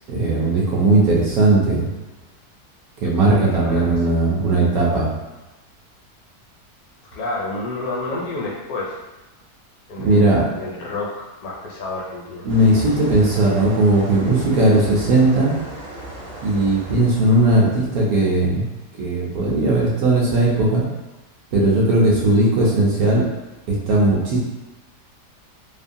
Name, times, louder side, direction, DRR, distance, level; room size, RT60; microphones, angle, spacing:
voice 1, 0.1-1.9 3.0-5.1 10.0-10.4 12.4-15.5 16.4-18.7 19.0-20.8 21.5-23.2 23.7-24.4, right 2 dB, 70° right, -4 dB, 1.0 m, -17 dB
voice 2, 3.3-4.2 7.1-9.0 9.9-12.5, left 2 dB, 70° left, -4 dB, 1.0 m, -30 dB
sound 1, 12.5-17.8, right 1 dB, 50° right, 0.7 m, -36 dB
2.9 x 2.1 x 2.6 m, 1.1 s
omnidirectional pair, 1.8 m